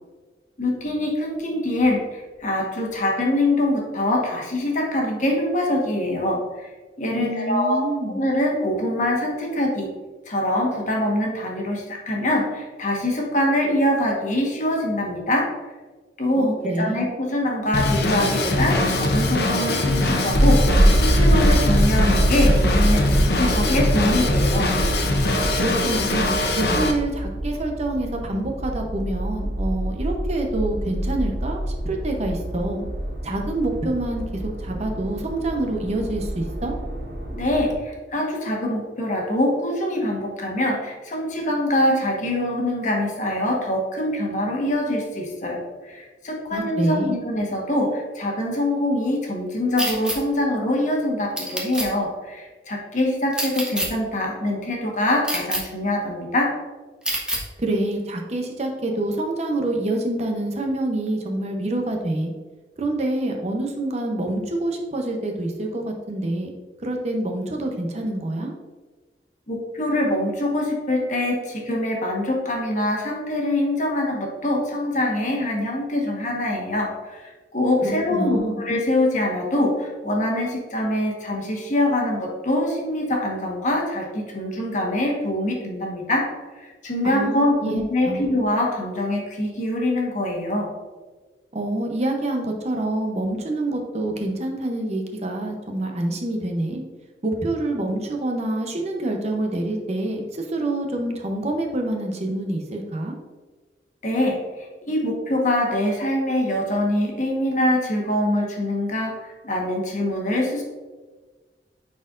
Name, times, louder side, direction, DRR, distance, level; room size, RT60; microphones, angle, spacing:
voice 1, 0.6-6.7 7.0-9.9 10.3-15.5 16.2-24.7 37.3-45.6 45.8-56.5 69.5-86.3 86.5-90.7 104.0-110.6, left 1 dB, 45° left, -1 dB, 1.3 m, -24 dB
voice 2, 7.2-8.2 16.3-17.1 25.6-26.3 26.6-32.8 33.2-36.7 46.5-47.2 57.6-62.3 62.8-66.5 66.8-68.5 77.8-78.6 87.0-88.3 91.5-96.8 97.2-103.1, right 1 dB, 40° right, 2 dB, 0.7 m, -26 dB
Drum kit / Drum, 17.7-26.9, left 2 dB, 65° left, 0.8 m, -22 dB
sound 1, 20.3-37.8, right 1 dB, 90° right, 1.8 m, -24 dB
sound 2, 49.8-50.2 51.4-51.9 53.3-53.9 55.2-55.6 57.0-57.4, right 1 dB, 5° right, 0.9 m, -25 dB
9.1 x 4.3 x 2.5 m, 1.3 s
head